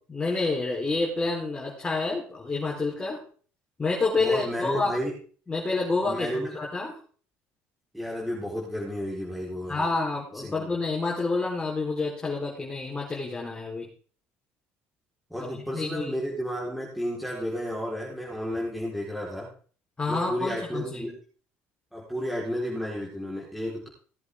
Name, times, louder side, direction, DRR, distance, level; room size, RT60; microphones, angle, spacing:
voice 1, 0.1-3.2 3.8-4.9 5.5-6.9 9.7-13.9 15.4-16.1 20.0-21.0, left 3 dB, 20° left, -3 dB, 4.1 m, -28 dB
voice 2, 4.2-5.1 6.0-6.5 7.9-9.9 10.4-10.7 15.3-19.5 20.1-21.1 21.9-23.9, equal, ahead, -5 dB, 4.4 m, -32 dB
18.0 x 7.9 x 3.7 m, 0.42 s
supercardioid pair, 100°, 5 cm